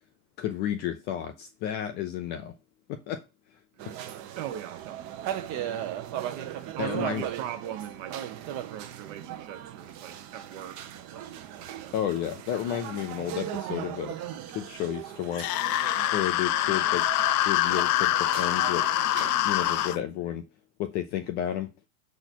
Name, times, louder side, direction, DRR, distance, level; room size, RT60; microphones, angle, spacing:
voice 1, 0.4-2.6 2.9-3.2 6.8-7.3 11.9-14.2 14.5-15.9 16.1-17.1 17.5-18.9 19.2-20.4 20.8-21.7, left 11 dB, 25° left, 0.4 m, -32 dB
sound 1, 3.8-20.0, right 10 dB, 35° right, 0.9 m, -38 dB
voice 2, 4.4-5.5 6.7-12.0, right 11 dB, 55° right, 1.3 m, -40 dB
sound 2, 15.3-20.0, left 14 dB, 75° left, 0.6 m, -25 dB
6.8 x 4.2 x 4.4 m
supercardioid pair, 135°, 46 cm